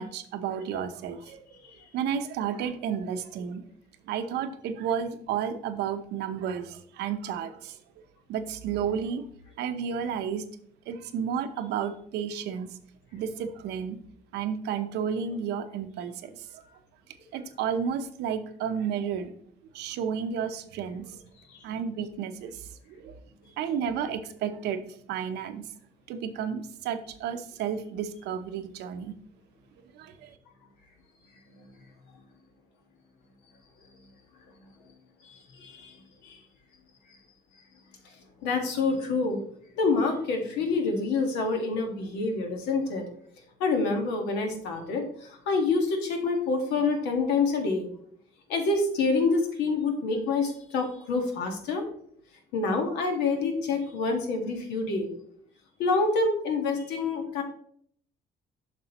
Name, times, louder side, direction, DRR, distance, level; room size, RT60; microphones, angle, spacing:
voice 1, 0.0-1.5 1.9-3.6 4.0-7.8 8.3-9.3 9.6-10.4 10.9-12.8 13.1-14.0 14.3-16.6 17.3-19.3 19.7-21.2 21.6-23.1 23.6-24.8 25.1-25.6 26.1-29.1 29.9-30.3, right 7 dB, 80° right, 9 dB, 0.8 m, -32 dB
voice 2, 35.2-35.9 36.2-36.4 38.4-39.4 39.8-43.1 43.6-47.9 48.5-51.8 52.5-55.1 55.8-57.4, left 3 dB, 90° left, 3 dB, 1.6 m, -27 dB
7.5 x 6.2 x 3.0 m, 0.63 s
cardioid pair, 110°, 17 cm